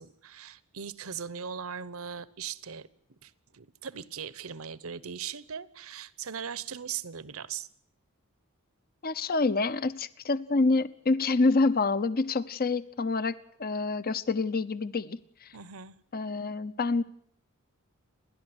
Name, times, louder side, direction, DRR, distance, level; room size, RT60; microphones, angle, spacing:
voice 1, 0.0-2.9 3.2-7.7 15.5-15.9, right 7 dB, 75° right, 17 dB, 1.0 m, -39 dB
voice 2, 9.0-13.3 13.6-15.5 16.1-17.0, left 3 dB, 45° left, 15 dB, 0.8 m, -27 dB
30.0 x 11.5 x 9.7 m, 0.67 s
head